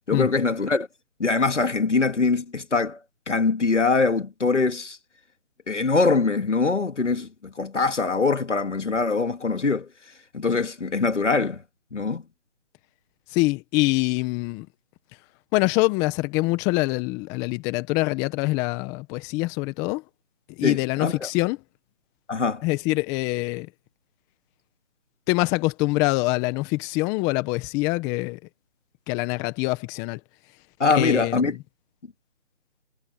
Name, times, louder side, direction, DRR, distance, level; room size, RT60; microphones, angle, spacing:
voice 1, 0.1-0.9 1.2-3.0 3.3-5.0 5.7-9.9 10.3-11.6 11.9-12.2 20.6-21.3 22.3-22.6 30.8-31.6, left 4 dB, 80° left, 2.7 m, -23 dB
voice 2, 13.3-14.7 15.5-20.0 20.6-21.6 22.6-23.7 25.3-28.4 29.1-30.2 30.9-31.6, left 22 dB, 10° left, 1.3 m, -24 dB
figure-of-eight pair, 155°, 36 cm